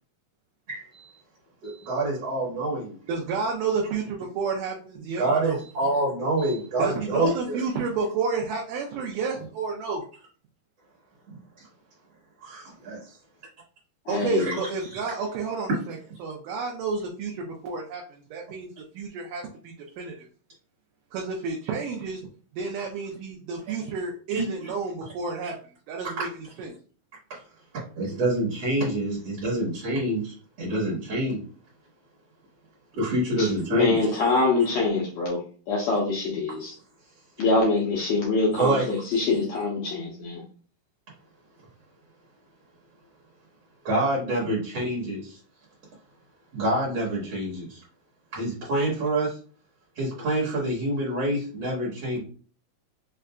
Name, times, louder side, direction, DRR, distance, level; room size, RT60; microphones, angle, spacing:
voice 1, 0.7-1.2 1.6-3.0 5.2-7.6 11.3-11.7 12.4-13.2 14.4-14.6 14.9-15.0 24.3-24.5 26.0-26.2 27.3-27.4 28.0-31.4 33.0-34.1 38.5-38.9 43.8-45.4 46.5-47.8 48.3-49.4 50.0-52.2, right 1 dB, 60° right, -5 dB, 1.8 m, -27 dB
voice 2, 3.1-5.6 6.8-10.0 14.1-18.7 18.9-20.3 21.1-22.2 22.5-25.6 25.9-26.7, right 4 dB, 80° right, 0 dB, 2.0 m, -30 dB
voice 3, 14.1-14.5 33.4-35.4 35.7-36.7 37.4-40.4, left 3 dB, 80° left, -3 dB, 1.6 m, -24 dB
5.5 x 2.5 x 2.2 m, 0.41 s
omnidirectional pair, 4.1 m